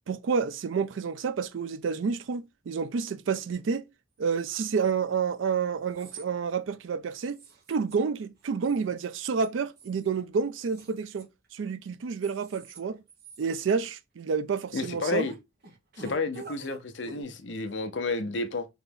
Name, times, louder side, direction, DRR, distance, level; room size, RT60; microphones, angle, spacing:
voice 1, 0.1-3.8 4.2-7.4 7.7-13.0 13.4-15.3, right 5 dB, 75° right, 0.4 m, -29 dB
sound 1, 3.5-3.6 4.3-4.9 5.8-6.3 6.7-6.8 7.2-8.0 8.2-8.9 9.2-10.1 10.6-11.7 12.1-12.8 13.1-13.8 14.8-15.4 15.6-17.2, right 4 dB, 50° right, 1.2 m, -47 dB
voice 2, 14.7-15.4 16.0-18.7, left 3 dB, 60° left, 0.6 m, -31 dB
3.9 x 2.9 x 3.8 m
head